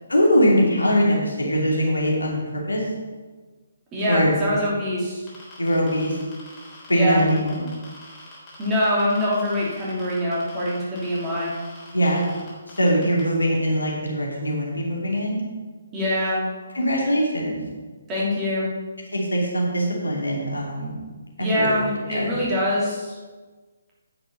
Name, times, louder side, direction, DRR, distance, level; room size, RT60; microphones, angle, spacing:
voice 1, 0.1-2.8 4.1-4.3 5.6-6.2 6.9-7.6 11.9-12.3 12.8-15.4 16.7-17.6 19.1-21.0 21.4-21.7 22.1-22.3, equal, 80° left, -2 dB, 2.7 m, -22 dB
voice 2, 3.9-5.2 6.9-7.2 8.6-11.5 15.9-16.5 18.1-18.7 21.4-23.2, left 1 dB, 20° right, -7 dB, 2.9 m, -24 dB
sound 1, 5.3-13.2, left 2 dB, 20° left, 3.5 m, -45 dB
9.7 x 6.2 x 5.6 m, 1.4 s
figure-of-eight pair, 140°, 0 cm